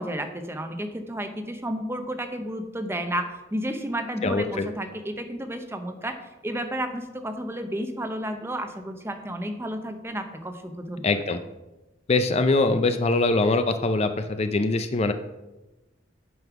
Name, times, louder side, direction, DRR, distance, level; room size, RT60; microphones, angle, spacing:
voice 1, 0.0-6.2 6.4-11.1, right 1 dB, 15° right, 7 dB, 0.7 m, -32 dB
voice 2, 4.2-4.7 11.0-11.4 12.1-15.1, left 3 dB, 35° left, 8 dB, 0.5 m, -23 dB
9.4 x 5.4 x 5.9 m, 1.0 s
head